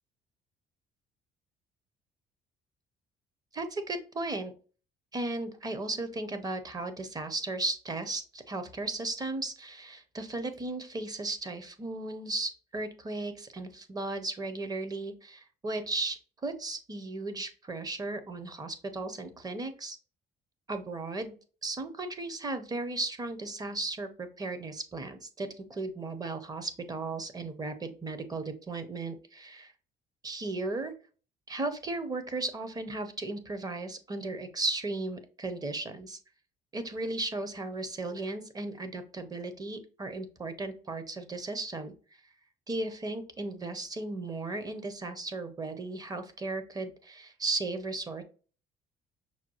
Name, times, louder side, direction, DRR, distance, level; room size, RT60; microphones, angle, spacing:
voice 1, 3.5-4.5 5.1-20.0 20.7-21.3 21.6-29.7 30.2-30.9 31.5-36.2 36.7-41.9 42.7-48.2, right 2 dB, 20° right, 9 dB, 0.8 m, -36 dB
5.8 x 2.3 x 2.9 m, 0.38 s
cardioid pair, 110°, 17 cm